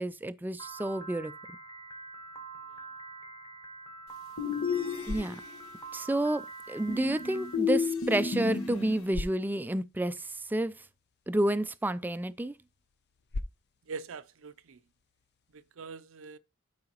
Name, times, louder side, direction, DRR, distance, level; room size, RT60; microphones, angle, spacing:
voice 1, 0.0-1.3 5.1-5.4 5.9-10.7 11.3-12.6, right 1 dB, 10° right, 0.3 m, -30 dB
Piano, 0.6-7.6, right 3 dB, 15° left, 1.0 m, -45 dB
sound 1, 4.4-5.6 6.9-9.1, left 6 dB, 80° left, 1.2 m, -32 dB
sound 2, 4.7-15.8, left 2 dB, 50° left, 0.5 m, -46 dB
voice 2, 13.9-14.8 15.5-16.4, right 5 dB, 65° right, 0.5 m, -43 dB
11.5 x 4.8 x 2.9 m
head